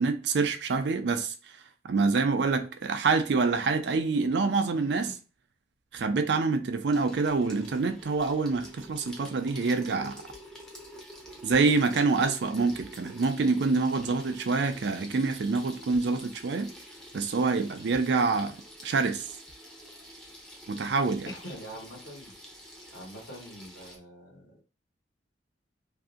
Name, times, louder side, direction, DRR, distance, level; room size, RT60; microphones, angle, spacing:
voice 1, 0.0-1.3 1.8-5.1 5.9-10.2 11.4-16.7 17.1-18.6 18.8-19.3 20.7-21.3, right 4 dB, 65° right, 0.4 m, -26 dB
voice 2, 4.7-5.1 21.3-22.3 22.9-24.6, equal, 75° left, 1.2 m, -44 dB
Water tap faucet / Sink (filling or washing), 6.9-24.0, equal, 5° left, 0.5 m, -48 dB
2.7 x 2.5 x 2.4 m
head